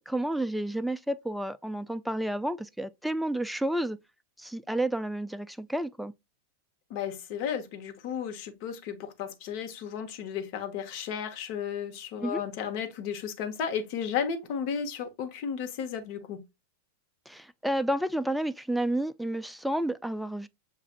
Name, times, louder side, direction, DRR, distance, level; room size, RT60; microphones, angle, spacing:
voice 1, 0.0-4.0 4.4-6.1 12.2-12.4 17.3-20.5, right 1 dB, ahead, 0.3 m, -30 dB
voice 2, 6.9-16.4, left 7 dB, 50° left, 1.0 m, -34 dB
7.0 x 2.4 x 2.5 m
hypercardioid pair, 125°, 0 cm